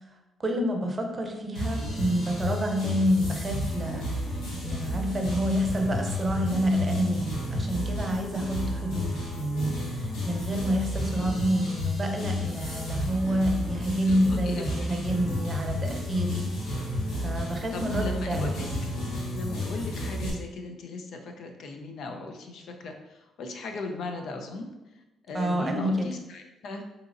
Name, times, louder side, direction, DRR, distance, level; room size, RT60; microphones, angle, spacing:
voice 1, 0.4-16.4 16.7-16.9 17.2-18.5 25.3-26.1, equal, 30° right, 3 dB, 0.6 m, -28 dB
sound 1, 1.5-20.3, left 1 dB, 90° left, 1.0 m, -32 dB
voice 2, 14.1-15.2 17.7-18.7 19.3-24.7 25.3-26.8, left 3 dB, 70° left, 4 dB, 0.5 m, -38 dB
4.9 x 2.8 x 2.5 m, 1.0 s
cardioid pair, 90°, 0 cm